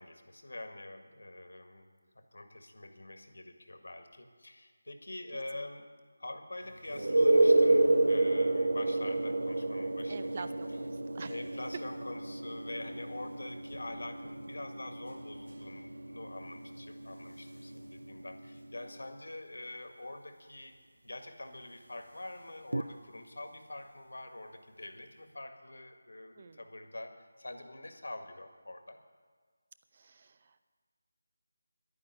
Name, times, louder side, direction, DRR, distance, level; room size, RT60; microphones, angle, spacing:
voice 1, 0.0-1.9 2.2-5.9 6.2-10.5 11.3-20.8 21.0-29.0, left 2 dB, 80° left, 6 dB, 1.8 m, -45 dB
sound 1, 6.9-18.5 22.7-22.8, right 2 dB, 85° right, 0.6 m, -30 dB
voice 2, 10.1-11.3 26.4-26.6 29.9-30.6, right 5 dB, 35° right, 11 dB, 0.7 m, -46 dB
11.0 x 9.6 x 9.8 m, 1.5 s
figure-of-eight pair, 170°, 0 cm